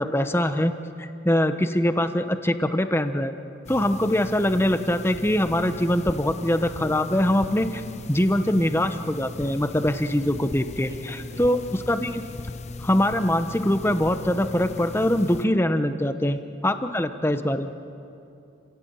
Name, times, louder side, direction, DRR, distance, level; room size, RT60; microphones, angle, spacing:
voice 1, 0.0-3.3 3.7-7.8 8.1-12.2 12.8-17.7, left 1 dB, 15° left, 9 dB, 1.0 m, -23 dB
sound 1, 3.6-15.4, left 3 dB, 40° left, 0.7 m, -38 dB
voice 2, 10.9-11.7 16.3-16.4, right 1 dB, 20° right, 1 dB, 4.3 m, -47 dB
30.0 x 17.0 x 8.9 m, 2.7 s
head